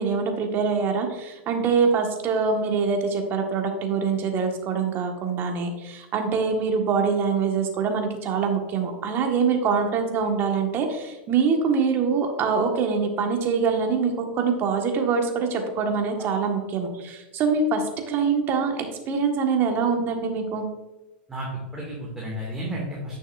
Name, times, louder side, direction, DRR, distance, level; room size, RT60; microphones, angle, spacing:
voice 1, 0.0-20.6, right 5 dB, 40° right, 3 dB, 1.5 m, -24 dB
voice 2, 21.3-23.2, equal, 10° right, -5 dB, 2.2 m, -32 dB
9.7 x 6.4 x 2.6 m, 1.1 s
hypercardioid pair, 105°, 6 cm